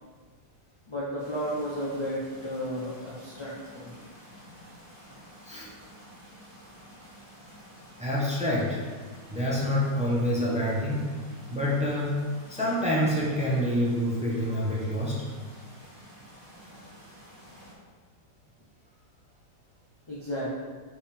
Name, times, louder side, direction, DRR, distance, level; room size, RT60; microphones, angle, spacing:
voice 1, 0.9-4.0 20.1-20.5, equal, 25° left, -7 dB, 0.6 m, -33 dB
sound 1, 1.2-17.7, equal, 20° right, 1.5 m, -51 dB
voice 2, 8.0-8.8 9.3-11.1 11.5-12.2 12.5-15.2, equal, 5° right, -5 dB, 0.8 m, -27 dB
5.4 x 5.1 x 3.5 m, 1.5 s
omnidirectional pair, 1.8 m